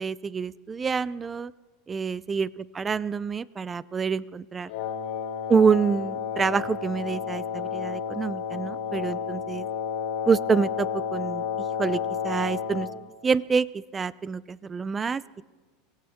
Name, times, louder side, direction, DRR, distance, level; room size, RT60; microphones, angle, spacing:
voice 1, 0.0-1.5 1.9-4.7 5.5-9.6 10.3-12.9 13.2-13.7 13.9-15.2, right 5 dB, 20° right, 20 dB, 0.4 m, -27 dB
Wind instrument woodwind instrument, 4.7-13.0, left 7 dB, 70° left, 2.7 m, -31 dB
23.0 x 17.5 x 3.5 m, 1.3 s
supercardioid pair, 120°, 0 cm